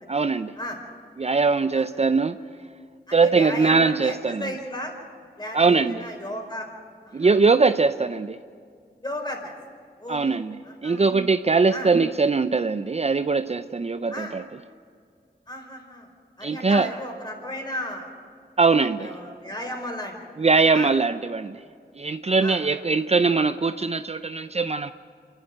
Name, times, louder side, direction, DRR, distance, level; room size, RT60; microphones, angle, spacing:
voice 1, 0.1-0.5 1.2-2.4 3.1-4.5 5.5-6.0 7.1-8.4 10.1-10.6 10.8-14.4 16.4-16.9 18.6-19.1 20.4-21.6 22.0-24.9, right 4 dB, 40° right, 10 dB, 0.5 m, -21 dB
voice 2, 3.1-4.9 5.4-6.7 7.1-7.4 9.0-9.5 10.0-10.2 10.6-11.1 11.7-11.9 14.1-14.3 15.5-16.1 16.4-18.1 18.8-20.1 20.7-20.9 22.4-22.6, left 1 dB, 25° left, 2 dB, 4.7 m, -34 dB
27.5 x 11.5 x 9.3 m, 2.2 s
wide cardioid pair, 65°, 17 cm